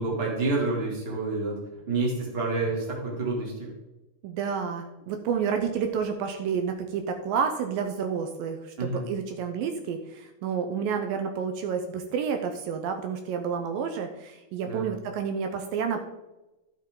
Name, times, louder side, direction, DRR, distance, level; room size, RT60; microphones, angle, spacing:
voice 1, 0.0-1.6 1.9-3.7 8.8-9.1 14.6-14.9, right 3 dB, 20° right, -3 dB, 1.6 m, -28 dB
voice 2, 4.2-16.0, right 6 dB, 85° right, 5 dB, 2.0 m, -30 dB
12.0 x 6.9 x 3.8 m, 1.0 s
omnidirectional pair, 4.9 m